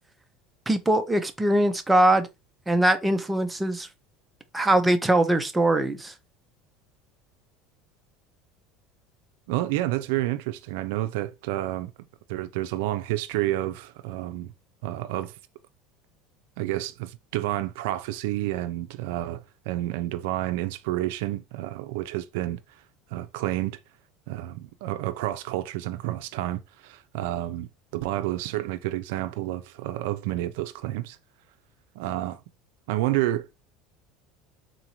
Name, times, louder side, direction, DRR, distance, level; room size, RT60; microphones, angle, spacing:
voice 1, 0.7-2.3 2.7-3.9 4.5-6.1, right 1 dB, 10° right, 0.5 m, -22 dB
voice 2, 9.5-11.9 12.3-14.5 14.8-15.3 16.6-22.6 23.1-23.8 24.3-31.2 32.0-32.4 32.9-33.5, right 15 dB, 80° right, 0.4 m, -29 dB
4.0 x 2.5 x 2.9 m
supercardioid pair, 120°, 0 cm